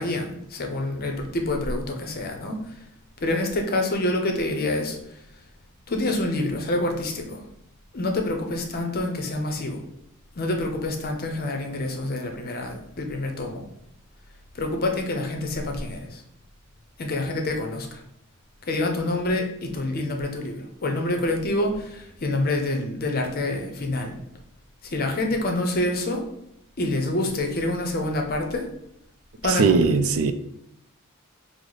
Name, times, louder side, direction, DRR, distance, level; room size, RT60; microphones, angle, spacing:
voice 1, 0.0-2.7 3.2-5.0 5.9-7.4 7.9-9.8 10.4-13.6 14.5-16.2 17.0-18.0 18.7-24.1 24.8-26.2 26.8-28.7 29.4-29.9, left 2 dB, 45° left, 0.6 m, -27 dB
voice 2, 29.6-30.3, right 5 dB, 75° right, 0.4 m, -19 dB
4.7 x 2.0 x 3.8 m
head